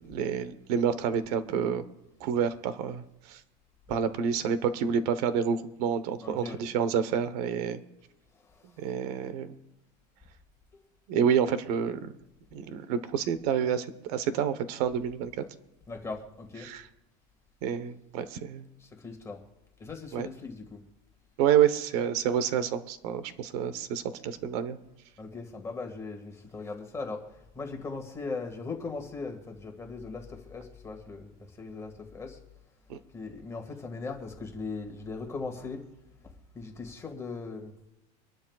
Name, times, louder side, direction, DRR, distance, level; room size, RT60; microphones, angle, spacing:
voice 1, 0.0-1.8 2.2-3.4 3.9-7.8 8.8-9.5 11.1-12.1 12.5-15.4 16.6-16.8 17.6-18.6 20.1-20.3 21.4-24.8 32.9-33.0, right 8 dB, 65° right, 1.2 m, -28 dB
voice 2, 6.2-6.7 8.3-8.9 15.4-15.5 15.9-16.7 18.8-19.4 19.8-20.8 25.2-32.4 33.1-35.9 36.2-37.8, left 4 dB, 15° left, 2.0 m, -39 dB
25.5 x 11.5 x 2.4 m
supercardioid pair, 165°, 21 cm